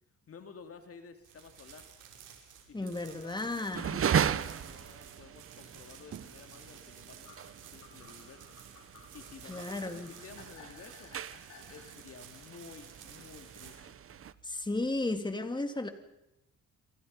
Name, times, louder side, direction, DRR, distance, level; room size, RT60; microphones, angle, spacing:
voice 1, 0.3-1.9 2.7-8.6 9.1-11.2 11.7-14.0, left 5 dB, 50° left, 7 dB, 2.5 m, -52 dB
sound 1, 1.2-15.2, right 8 dB, 80° right, 6.2 m, -54 dB
voice 2, 2.7-4.0 9.4-10.1 14.4-15.9, left 2 dB, 15° left, 7 dB, 3.0 m, -34 dB
sound 2, 3.7-14.3, right 8 dB, 45° right, 1.1 m, -37 dB
sound 3, 7.2-12.0, left 7 dB, 75° left, 5.0 m, -56 dB
29.0 x 24.5 x 5.4 m, 0.89 s
cardioid pair, 90°, 30 cm